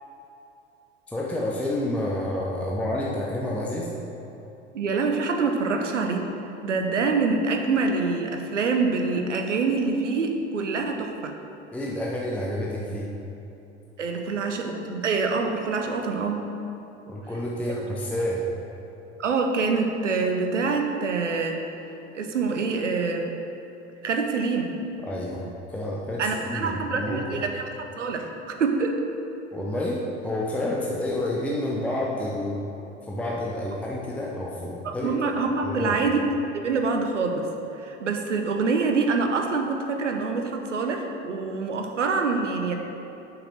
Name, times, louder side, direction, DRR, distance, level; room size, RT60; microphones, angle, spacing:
voice 1, 1.1-3.9 11.7-13.1 17.1-18.5 25.1-27.4 29.5-32.7 33.1-35.2 35.6-36.0, left 1 dB, 5° left, -4 dB, 0.7 m, -29 dB
voice 2, 4.7-6.3 6.6-11.4 14.0-16.5 19.2-21.6 22.1-23.3 24.0-24.7 26.2-27.7 28.0-28.3 28.6-29.1 34.8-36.2 36.5-37.5 37.7-42.7, right 4 dB, 80° right, 4 dB, 0.9 m, -25 dB
6.7 x 5.9 x 6.0 m, 2.9 s
figure-of-eight pair, 75°, 36 cm